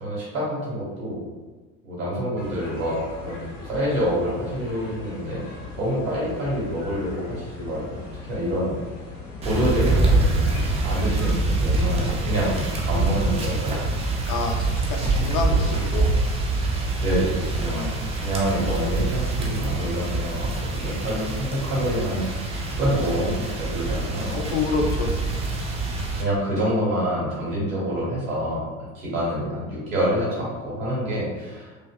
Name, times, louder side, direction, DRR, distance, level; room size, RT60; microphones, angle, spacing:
voice 1, 0.0-1.3 1.8-5.4 5.8-8.0 8.3-8.8 9.4-13.9 15.5-15.6 17.0-24.4 26.2-31.7, equal, 70° right, -7 dB, 0.9 m, -27 dB
sound 1, 2.4-11.3, left 3 dB, 60° left, 1.0 m, -39 dB
sound 2, 9.4-26.2, right 2 dB, 15° right, 0.3 m, -25 dB
voice 2, 14.3-16.1 17.5-18.0 24.3-25.4, left 4 dB, 45° left, 2 dB, 0.5 m, -28 dB
2.6 x 2.4 x 2.2 m, 1.3 s
figure-of-eight pair, 65°, 41 cm